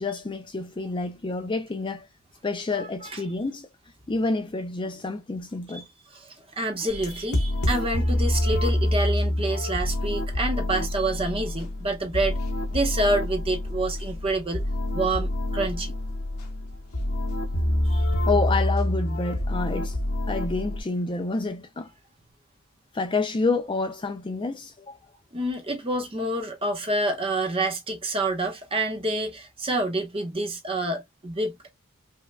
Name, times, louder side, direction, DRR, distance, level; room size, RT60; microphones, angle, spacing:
voice 1, 0.0-2.1 2.4-3.7 4.1-5.9 18.3-20.0 20.3-21.9 22.9-25.0, left 3 dB, 20° left, 0.4 m, -28 dB
voice 2, 2.8-3.2 5.7-5.8 6.1-12.3 12.7-14.6 14.9-15.9 17.9-18.1 25.3-31.5, right 2 dB, 25° right, 0.9 m, -28 dB
sound 1, 6.9-20.8, left 1 dB, 75° left, 1.1 m, -27 dB
5.4 x 2.3 x 2.2 m
head